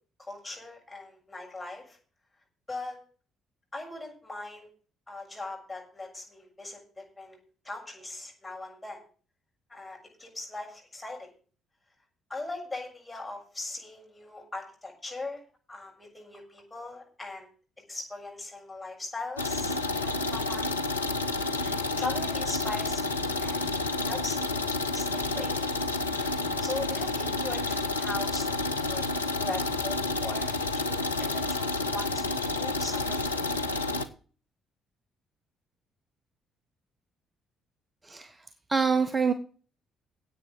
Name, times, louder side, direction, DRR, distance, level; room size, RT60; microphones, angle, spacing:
voice 1, 0.2-2.0 2.7-3.0 3.7-4.7 5.1-7.4 7.6-9.0 9.7-11.3 12.3-15.4 15.7-17.5 17.9-19.8 20.0-20.8 21.6-23.7 24.0-25.7 26.6-28.5 28.7-29.1 29.4-33.5, left 2 dB, 15° left, 0 dB, 7.1 m, -40 dB
sound 1, 19.4-34.1, left 3 dB, 85° left, 0.6 m, -30 dB
voice 2, 38.0-38.4 38.7-39.3, right 5 dB, 25° right, 10 dB, 1.1 m, -25 dB
10.5 x 8.4 x 7.5 m, 0.40 s
figure-of-eight pair, 45°, 0 cm